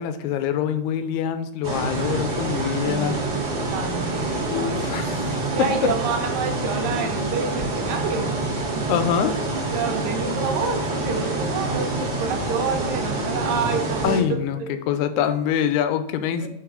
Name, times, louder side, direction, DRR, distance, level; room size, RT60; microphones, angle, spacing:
voice 1, 0.0-3.2 4.5-5.3 5.8-5.9 8.9-9.3 14.0-14.6 14.9-16.5, left 9 dB, 80° left, 10 dB, 1.9 m, -24 dB
sound 1, 1.6-14.2, right 2 dB, 35° right, 2.0 m, -26 dB
voice 2, 2.6-4.8 5.1-8.4 8.7-9.4 9.7-14.4 15.2-15.3 16.4-16.5, right 5 dB, 70° right, 5 dB, 2.0 m, -29 dB
7.7 x 3.3 x 5.1 m, 0.87 s
omnidirectional pair, 3.6 m